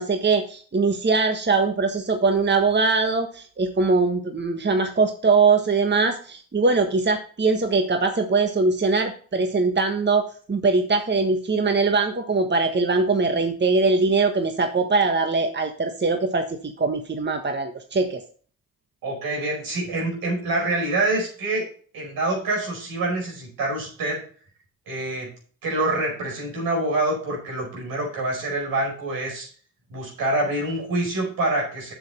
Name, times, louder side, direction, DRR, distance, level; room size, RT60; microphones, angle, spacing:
voice 1, 0.0-18.2, right 3 dB, 30° right, 6 dB, 1.4 m, -22 dB
voice 2, 19.0-21.7 21.9-24.2 24.9-25.3 25.6-29.5 29.9-31.9, right 2 dB, 80° right, -1 dB, 5.0 m, -26 dB
7.9 x 7.2 x 4.3 m, 0.42 s
supercardioid pair, 45°, 34 cm